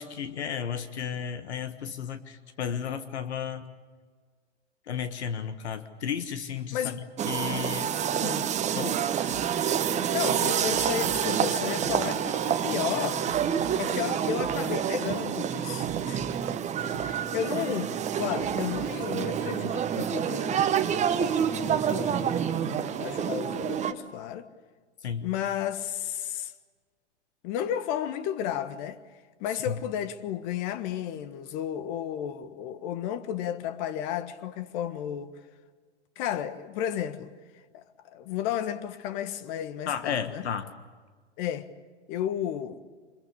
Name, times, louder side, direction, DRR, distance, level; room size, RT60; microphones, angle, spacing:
voice 1, 0.0-3.7 4.9-7.0 7.3-7.9 8.8-9.0 10.3-10.6 25.0-25.3 29.7-29.8 39.9-40.7, left 8 dB, 70° left, 1.6 m, -33 dB
sound 1, 7.2-23.9, right 8 dB, 20° right, 1.2 m, -28 dB
voice 2, 8.1-8.5 10.1-13.2 13.8-16.2 16.8-20.7 21.5-24.5 25.2-26.5 27.4-29.0 29.4-35.3 36.1-37.3 37.7-40.5 41.4-41.7 42.1-42.8, left 10 dB, 40° left, 1.5 m, -33 dB
Drum kit, 9.3-19.5, right 9 dB, 65° right, 1.7 m, -45 dB
26.0 x 22.0 x 8.5 m
hypercardioid pair, 110°, 35 cm